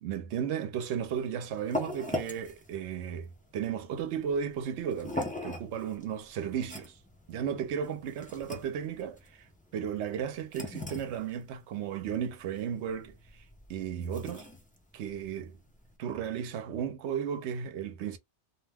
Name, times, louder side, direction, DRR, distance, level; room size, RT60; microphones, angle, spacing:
voice 1, 0.0-7.0 7.3-9.5 9.7-13.2 13.7-14.5 14.9-15.6 16.0-18.2, right 8 dB, 75° right, 0.8 m, -34 dB
sound 1, 1.0-16.0, left 1 dB, 15° left, 0.3 m, -41 dB
2.5 x 2.1 x 3.3 m
omnidirectional pair, 1.2 m